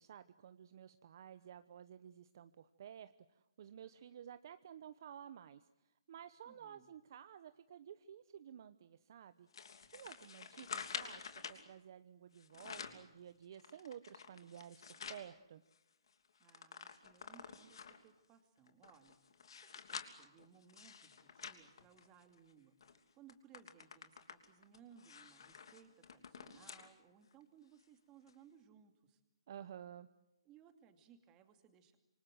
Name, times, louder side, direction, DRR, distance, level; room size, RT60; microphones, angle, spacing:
voice 1, 0.0-5.6 6.1-9.5 9.9-11.2 11.5-15.6 29.5-30.1, right 9 dB, 45° right, 12 dB, 0.9 m, -53 dB
voice 2, 6.5-6.9 16.4-19.2 19.6-29.2 30.4-32.0, right 8 dB, 20° right, 7 dB, 2.6 m, -64 dB
sound 1, 9.5-11.6 12.3-13.1 13.5-15.3 15.7-15.8 16.1-18.1 18.7-22.4 22.8-23.0 23.3-26.9 27.3-27.4 28.3-28.4, left 6 dB, 60° left, 3.1 m, -49 dB
27.0 x 25.0 x 7.7 m, 0.95 s
hypercardioid pair, 160°, 3 cm